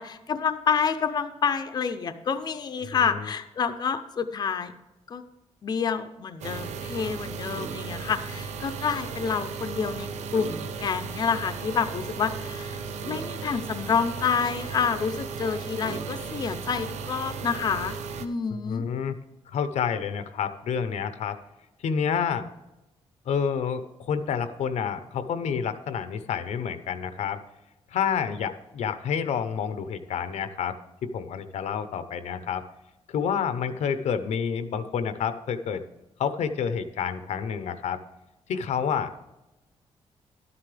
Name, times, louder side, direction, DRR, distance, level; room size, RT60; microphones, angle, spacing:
voice 1, 0.0-4.7 5.1-5.2 5.6-18.9, left 6 dB, 40° left, 9 dB, 0.6 m, -28 dB
sound 1, 6.4-18.3, right 5 dB, 90° right, 0.8 m, -35 dB
voice 2, 18.5-19.2 19.5-21.4 21.8-22.5 23.3-27.4 27.9-32.6 33.1-35.8 36.2-38.0 38.5-39.1, left 7 dB, 80° left, 11 dB, 0.8 m, -29 dB
12.0 x 9.7 x 3.3 m, 0.98 s
wide cardioid pair, 165°, 11 cm